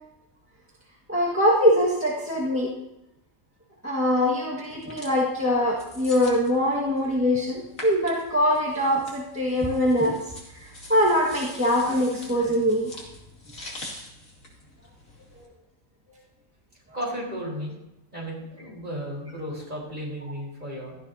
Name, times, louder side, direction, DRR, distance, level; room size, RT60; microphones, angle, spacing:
voice 1, 1.1-2.7 3.8-10.2 10.5-12.9 15.4-15.5, equal, 10° right, -6 dB, 1.7 m, -23 dB
sound 1, 4.7-15.4, left 1 dB, 75° left, 3.1 m, -45 dB
voice 2, 16.9-17.8 18.1-21.0, equal, 35° right, -4 dB, 4.8 m, -34 dB
17.0 x 13.5 x 2.8 m, 0.91 s
omnidirectional pair, 1.4 m